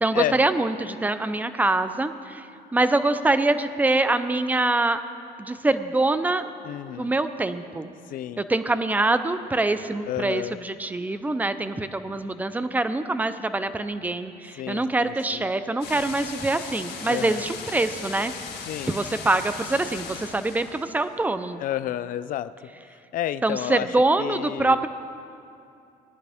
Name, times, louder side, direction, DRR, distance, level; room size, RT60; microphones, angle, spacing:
voice 1, 0.0-2.5 2.7-5.0 5.4-6.4 7.0-7.9 8.4-18.3 18.9-21.6 23.4-24.9, right 2 dB, 10° right, 11 dB, 0.5 m, -24 dB
voice 2, 6.6-7.1 8.1-8.4 10.1-10.6 14.6-15.5 17.1-17.4 18.6-19.0 21.6-22.5 23.1-23.9 24.2-24.8, left 12 dB, 55° left, 14 dB, 0.4 m, -30 dB
sound 1, 15.8-21.0, left 5 dB, 70° left, 2.0 m, -38 dB
19.0 x 10.5 x 3.5 m, 2.6 s
cardioid pair, 110°, 17 cm